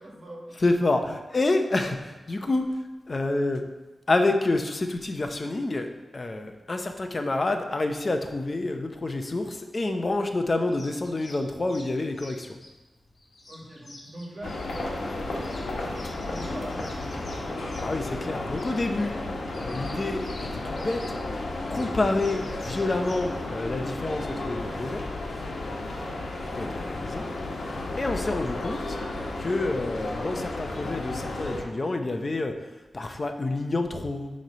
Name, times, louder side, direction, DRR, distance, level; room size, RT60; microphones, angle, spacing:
voice 1, 0.0-0.6 13.5-15.5 16.2-17.5 25.9-26.3, right 1 dB, 50° right, -1 dB, 1.6 m, -42 dB
voice 2, 0.6-2.7 3.1-3.7 4.1-12.6 17.8-19.1 19.6-21.2 21.7-25.0 26.6-27.2 28.0-29.0 29.4-32.6 32.9-34.3, left 2 dB, 35° left, 6 dB, 0.6 m, -28 dB
sound 1, 10.7-23.2, left 1 dB, 55° left, 1.4 m, -49 dB
sound 2, 14.4-31.6, left 2 dB, 85° left, 1.0 m, -33 dB
8.9 x 3.2 x 5.5 m, 1.1 s
wide cardioid pair, 115°, 0 cm